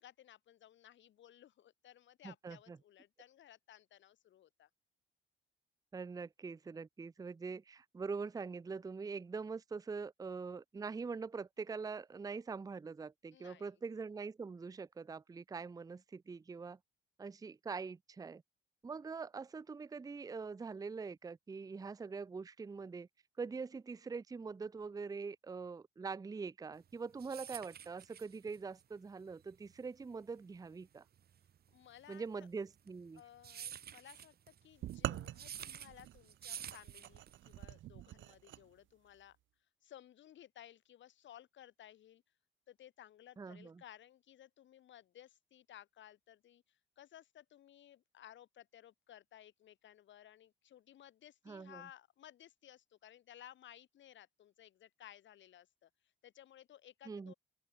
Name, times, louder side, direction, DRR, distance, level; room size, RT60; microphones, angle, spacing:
voice 1, 0.0-4.7 13.3-13.7 31.7-32.5 33.1-39.4 39.8-42.2 42.7-55.9 56.2-57.3, left 11 dB, 70° left, 3.3 m, -58 dB
voice 2, 2.2-2.8 5.9-16.8 17.2-18.4 18.8-23.1 23.4-31.0 32.1-33.2 43.4-43.8 51.5-51.9 57.1-57.3, right 4 dB, 20° right, 0.5 m, -44 dB
sound 1, 26.8-37.6, right 9 dB, 50° right, 1.0 m, -50 dB
sound 2, 34.8-38.6, right 13 dB, 75° right, 1.1 m, -44 dB
open air
cardioid pair, 90°, 20 cm